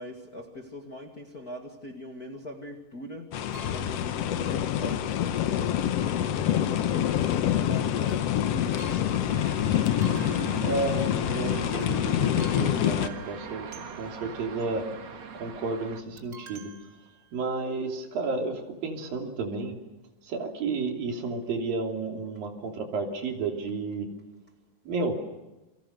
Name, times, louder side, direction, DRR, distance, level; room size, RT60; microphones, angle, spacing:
voice 1, 0.0-3.3 3.7-9.4, left 1 dB, 30° left, 2 dB, 2.0 m, -42 dB
sound 1, 3.3-13.1, left 10 dB, 75° left, 1.5 m, -26 dB
sound 2, 3.5-4.3 8.1-9.6 9.8-11.3 11.8-12.0 12.4-14.4 16.2-17.6 18.3-18.4 18.6-18.7, right 4 dB, 25° right, 2.5 m, -50 dB
sound 3, 9.3-16.0, right 7 dB, 50° right, 2.9 m, -41 dB
voice 2, 10.6-14.9 15.3-16.7 17.3-19.8 20.2-24.1 24.9-25.2, right 3 dB, 70° right, 3 dB, 4.7 m, -32 dB
29.0 x 24.5 x 6.7 m, 1.1 s
omnidirectional pair, 4.2 m